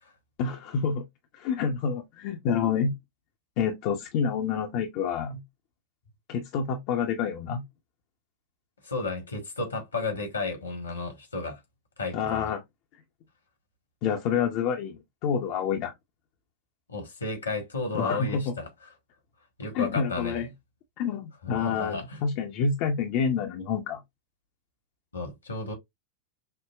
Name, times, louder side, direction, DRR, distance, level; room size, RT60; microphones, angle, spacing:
voice 1, 0.4-1.0 1.3-2.9 3.6-5.4 6.3-7.6 12.1-12.6 14.0-15.9 17.9-18.5 19.7-20.5 21.0-24.0, left 6 dB, 45° left, 0.7 m, -28 dB
voice 2, 8.8-11.6 12.0-12.5 16.9-18.9 19.6-20.4 21.4-22.2 25.1-25.7, left 3 dB, 75° left, 1.4 m, -33 dB
5.7 x 2.1 x 2.4 m
figure-of-eight pair, 90°, 0 cm